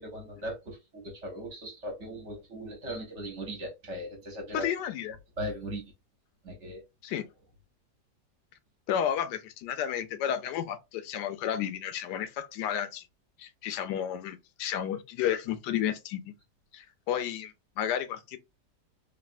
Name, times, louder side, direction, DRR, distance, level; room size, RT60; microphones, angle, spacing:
voice 1, 0.0-4.7 5.4-5.8 6.4-6.8, equal, 50° right, 1.0 m, -38 dB
voice 2, 4.5-5.2 7.0-7.2 8.9-13.1 13.4-16.3 16.7-18.4, left 9 dB, 85° left, 1.2 m, -32 dB
3.2 x 2.5 x 2.5 m
omnidirectional pair, 1.8 m